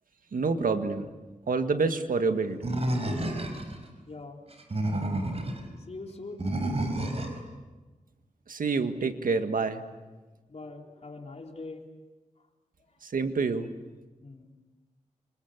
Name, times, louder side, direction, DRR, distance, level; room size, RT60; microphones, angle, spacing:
voice 1, 0.3-1.1 1.5-2.6 8.5-9.8 13.0-13.7, right 4 dB, 90° right, 8 dB, 1.8 m, -27 dB
Animal, 2.6-3.8 4.5-5.6 6.4-7.4, right 1 dB, 50° right, 4.9 m, -30 dB
voice 2, 4.1-4.4 5.9-6.5 10.5-11.8 14.2-14.5, left 3 dB, 50° left, 2 dB, 3.8 m, -42 dB
27.0 x 26.0 x 8.1 m, 1.2 s
wide cardioid pair, 90°, 14 cm